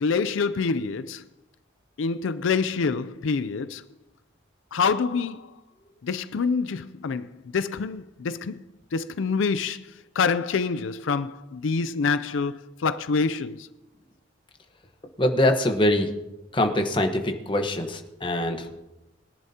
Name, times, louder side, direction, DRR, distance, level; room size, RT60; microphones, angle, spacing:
voice 1, 0.0-1.2 2.0-3.8 4.7-5.5 6.0-7.3 7.5-8.6 8.9-9.9 10.2-13.7, left 5 dB, 85° left, 0.4 m, -26 dB
voice 2, 15.2-16.1 16.5-18.8, left 1 dB, 25° left, 1.1 m, -23 dB
22.5 x 10.5 x 2.8 m
head